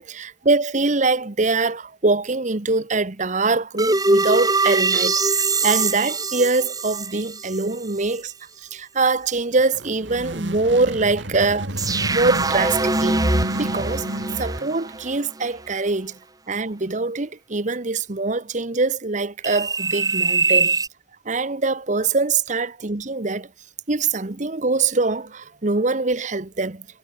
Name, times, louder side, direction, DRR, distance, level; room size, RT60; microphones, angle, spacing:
voice 1, 0.0-5.1 5.6-8.3 8.7-11.7 12.1-13.2 13.6-14.1 14.4-16.2 16.5-20.8 21.2-23.5 23.9-26.9, right 3 dB, 40° right, 1.1 m, -23 dB
sound 1, 3.8-7.7 8.1-8.2 11.8-15.5 19.4-20.9, right 3 dB, 20° right, 2.6 m, -22 dB
sound 2, 9.6-14.9, right 1 dB, 80° right, 5.8 m, -32 dB
head